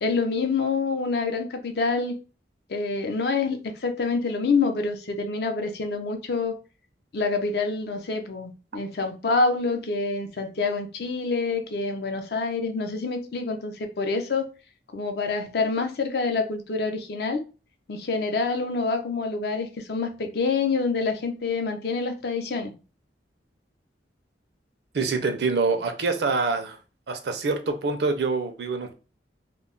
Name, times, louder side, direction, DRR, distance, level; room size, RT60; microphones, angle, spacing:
voice 1, 0.0-2.2 2.7-6.5 7.1-14.4 14.9-17.4 17.9-22.7, left 4 dB, 60° left, 5 dB, 0.5 m, -27 dB
voice 2, 24.9-26.8 27.1-28.9, right 3 dB, 65° right, 6 dB, 0.5 m, -25 dB
2.2 x 2.0 x 3.7 m, 0.33 s
head